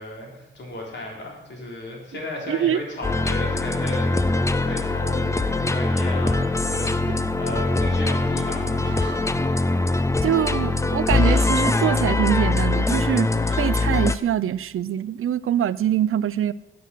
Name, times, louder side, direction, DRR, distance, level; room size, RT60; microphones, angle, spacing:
voice 1, 0.0-9.2, left 2 dB, 55° left, -1 dB, 3.7 m, -35 dB
voice 2, 2.5-2.8 7.1-7.2 10.2-13.3 13.6-16.5, right 10 dB, 85° right, 17 dB, 0.5 m, -24 dB
sound 1, 3.0-14.2, left 2 dB, 15° left, 0.5 m, -22 dB
sound 2, 6.8-7.0 8.8-9.2 11.2-11.5 13.4-13.7, right 6 dB, 60° right, 1.9 m, -40 dB
13.0 x 8.0 x 7.6 m, 0.94 s
wide cardioid pair, 175°, 21 cm